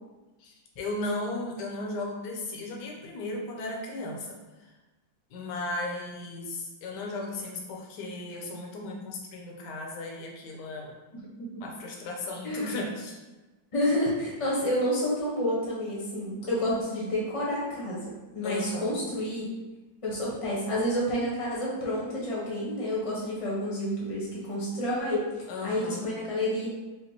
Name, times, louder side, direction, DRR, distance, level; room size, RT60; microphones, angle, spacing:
voice 1, 0.4-4.7 5.3-10.9 11.6-13.2 18.4-18.9 25.5-26.1, left 2 dB, 70° left, 0 dB, 1.2 m, -36 dB
voice 2, 11.1-11.6 12.4-12.7 13.7-19.5 20.0-25.2 25.6-26.7, left 1 dB, 25° left, -6 dB, 0.7 m, -29 dB
5.2 x 2.2 x 2.8 m, 1.1 s
omnidirectional pair, 2.0 m